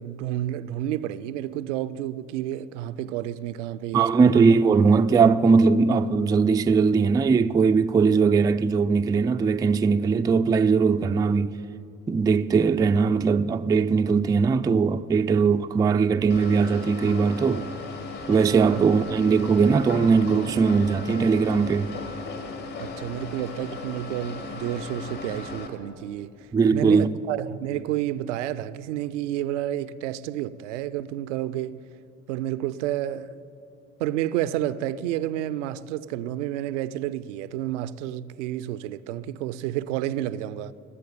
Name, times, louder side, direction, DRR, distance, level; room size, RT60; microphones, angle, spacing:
voice 1, 0.0-4.5 18.7-18.8 22.8-31.8 32.3-33.4 34.0-40.7, right 12 dB, 70° right, 0.5 m, -30 dB
voice 2, 3.9-11.5 12.1-17.7 18.3-21.9 26.5-27.1, right 5 dB, 10° right, 0.3 m, -20 dB
sound 1, 16.3-25.7, left 3 dB, 55° left, 2.1 m, -36 dB
19.5 x 7.8 x 8.7 m
figure-of-eight pair, 50°, 38 cm